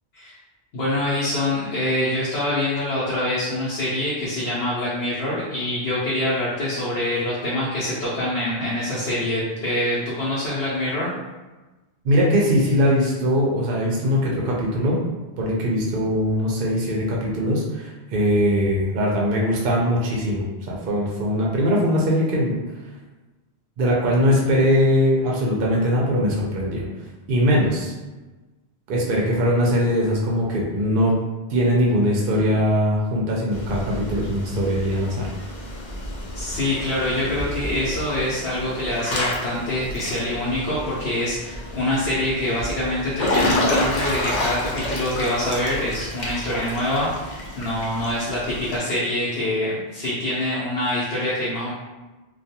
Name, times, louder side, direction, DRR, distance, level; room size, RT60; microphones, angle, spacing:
voice 1, 0.7-11.1 36.3-51.7, left 1 dB, 75° left, -9 dB, 0.9 m, -25 dB
voice 2, 12.0-15.0 15.4-22.6 23.8-26.8 27.3-27.9 28.9-31.1 31.5-35.3, equal, 60° right, -3 dB, 0.6 m, -21 dB
Water / Splash splatter / Drip, 33.5-48.8, left 1 dB, 55° left, 0.6 m, -29 dB
2.3 x 2.2 x 2.7 m, 1.2 s
omnidirectional pair, 1.1 m